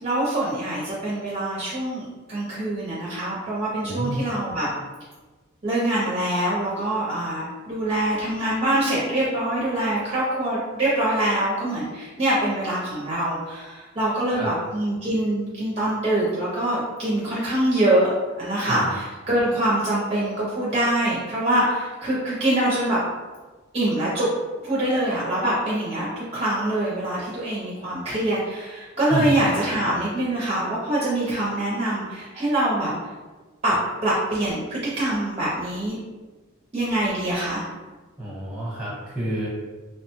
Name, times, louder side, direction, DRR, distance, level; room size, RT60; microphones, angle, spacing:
voice 1, 0.0-4.7 5.6-18.1 18.4-23.0 23.7-24.3 24.6-33.0 33.6-33.8 34.0-36.0 36.7-37.6, right 1 dB, 30° right, -7 dB, 0.5 m, -24 dB
voice 2, 3.8-4.2 14.3-14.5 18.7-18.9 29.1-29.4 38.2-39.5, right 1 dB, 5° right, -7 dB, 0.9 m, -28 dB
2.9 x 2.1 x 2.9 m, 1.3 s
head